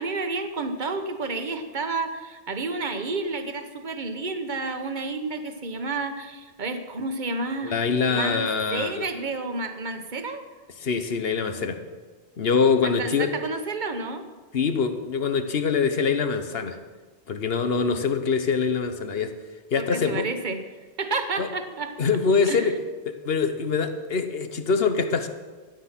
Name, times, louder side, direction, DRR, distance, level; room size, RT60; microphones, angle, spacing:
voice 1, 0.0-7.8 8.1-8.4 8.7-10.4 12.8-14.3 17.9-18.0 19.8-20.6 21.0-22.0 22.5-22.7, right 3 dB, 50° right, 7 dB, 1.2 m, -30 dB
voice 2, 7.6-9.1 10.8-11.8 12.4-13.3 14.5-16.8 17.3-19.3 19.7-20.2 21.4-21.5 22.0-22.8 23.1-25.3, left 5 dB, 70° left, 8 dB, 1.2 m, -24 dB
13.5 x 9.4 x 6.0 m, 1.4 s
omnidirectional pair, 1.0 m